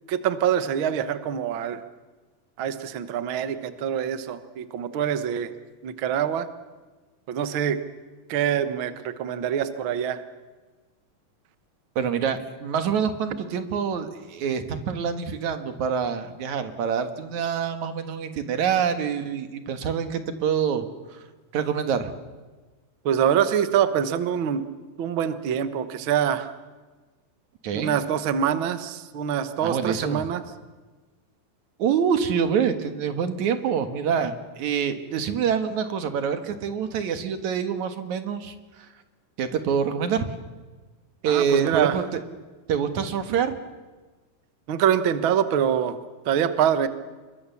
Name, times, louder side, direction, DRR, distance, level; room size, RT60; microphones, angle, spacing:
voice 1, 0.1-1.8 2.6-5.5 5.8-6.5 7.3-7.8 8.3-10.2 23.0-24.6 25.0-26.5 27.7-30.4 41.2-42.0 44.7-46.0 46.2-46.9, right 9 dB, 80° right, 11 dB, 1.1 m, -25 dB
voice 2, 12.0-20.8 21.5-22.1 27.6-27.9 29.6-30.3 31.8-38.5 39.4-40.3 41.2-42.0 42.7-43.6, right 7 dB, 60° right, 8 dB, 2.7 m, -26 dB
28.5 x 22.5 x 7.1 m, 1.3 s
omnidirectional pair, 4.2 m